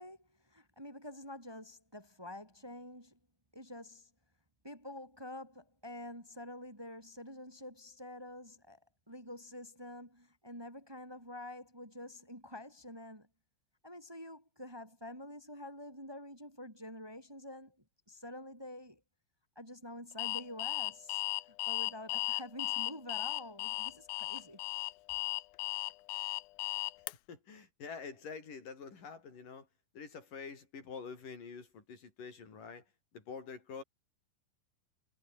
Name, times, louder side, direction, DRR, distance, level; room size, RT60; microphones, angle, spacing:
voice 1, 0.0-3.2 3.5-4.1 4.6-8.8 9.1-13.3 13.8-17.8 18.1-19.0 19.6-24.6, left 1 dB, 5° right, 5.2 m, -47 dB
Alarm, 20.2-27.1, left 18 dB, 80° left, 2.4 m, -36 dB
voice 2, 27.3-29.7 29.9-32.8 33.1-33.8, left 5 dB, 60° left, 6.8 m, -46 dB
omnidirectional pair, 4.3 m